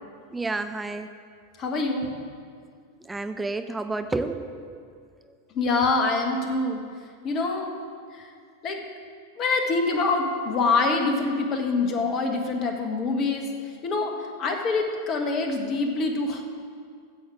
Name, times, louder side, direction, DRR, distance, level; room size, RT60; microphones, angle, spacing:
voice 1, 0.3-1.1 3.0-5.0, right 3 dB, 10° right, 9 dB, 0.4 m, -31 dB
voice 2, 1.6-2.2 5.5-6.8 7.2-7.7 8.1-8.3 8.6-8.8 9.4-13.5 13.8-16.4, left 3 dB, 35° left, 3 dB, 1.5 m, -25 dB
13.5 x 7.9 x 4.8 m, 2.1 s
figure-of-eight pair, 90°, 0 cm